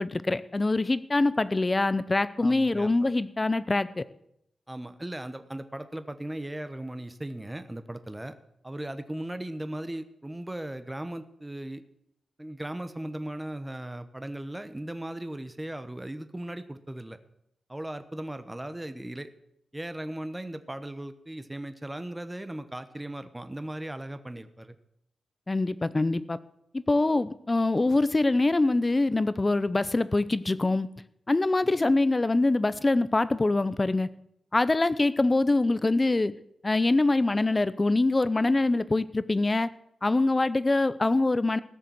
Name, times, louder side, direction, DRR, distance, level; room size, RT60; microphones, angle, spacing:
voice 1, 0.0-4.0 25.5-26.4 26.7-30.9 31.3-34.1 34.5-36.3 36.6-39.7 40.0-41.6, left 2 dB, 25° left, 16 dB, 0.6 m, -24 dB
voice 2, 2.4-3.1 4.7-8.3 8.6-11.8 12.4-17.2 17.7-19.3 19.7-24.7, right 1 dB, 10° right, 11 dB, 1.0 m, -37 dB
16.5 x 6.7 x 7.7 m, 0.76 s
wide cardioid pair, 100°, 0 cm